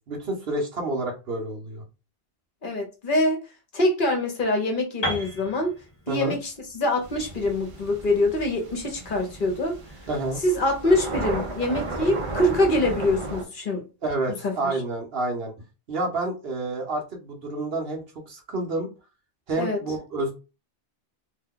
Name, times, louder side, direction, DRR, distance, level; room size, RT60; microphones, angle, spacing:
voice 1, 0.1-1.8 6.1-6.3 10.1-10.4 14.0-15.5 15.9-18.9 19.5-20.3, right 2 dB, 70° right, 1.2 m, -29 dB
voice 2, 2.6-3.4 3.7-5.8 6.1-9.8 10.4-13.8 14.3-14.7 19.6-19.8, left 1 dB, 55° left, 1.0 m, -24 dB
Piano, 5.0-8.9, equal, 25° left, 1.2 m, -35 dB
sound 1, 7.0-13.4, right 2 dB, 40° right, 0.6 m, -34 dB
2.8 x 2.2 x 3.6 m
omnidirectional pair, 1.1 m